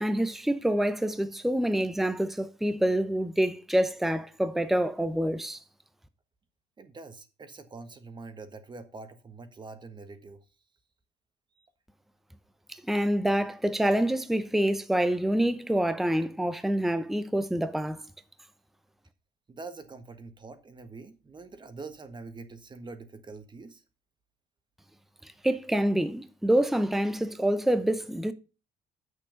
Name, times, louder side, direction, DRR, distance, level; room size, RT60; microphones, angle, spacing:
voice 1, 0.0-5.6 12.7-18.0 25.4-28.3, right 1 dB, ahead, 0.7 m, -26 dB
voice 2, 6.8-10.4 11.5-11.7 19.5-23.8, right 3 dB, 25° right, 1.5 m, -45 dB
8.2 x 6.6 x 5.1 m
cardioid pair, 110°, 17 cm